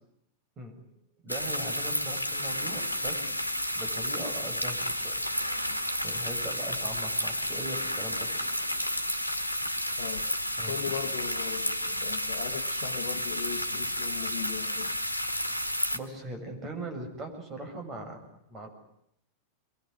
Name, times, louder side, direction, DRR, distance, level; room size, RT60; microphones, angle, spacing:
voice 1, 1.2-3.4 3.7-5.2 6.0-8.3 10.6-10.9 15.9-18.2 18.5-18.7, right 1 dB, 25° right, 5 dB, 7.7 m, -40 dB
sound 1, 1.3-16.0, equal, 85° left, 1.8 m, -31 dB
voice 2, 10.0-10.3 10.7-14.9, left 8 dB, 50° left, 7 dB, 1.8 m, -38 dB
24.0 x 23.0 x 9.7 m, 0.75 s
figure-of-eight pair, 90°, 0 cm